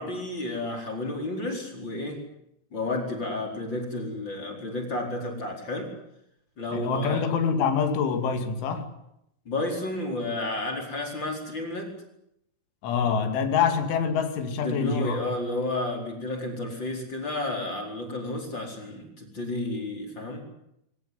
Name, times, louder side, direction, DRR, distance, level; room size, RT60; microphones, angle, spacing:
voice 1, 0.0-2.2 2.7-5.9 6.6-7.3 9.4-11.9 14.6-20.4, left 2 dB, 25° left, 4.8 m, -31 dB
voice 2, 6.7-8.9 12.8-15.2, left 6 dB, 85° left, 4.8 m, -25 dB
25.5 x 17.5 x 9.5 m
omnidirectional pair, 5.3 m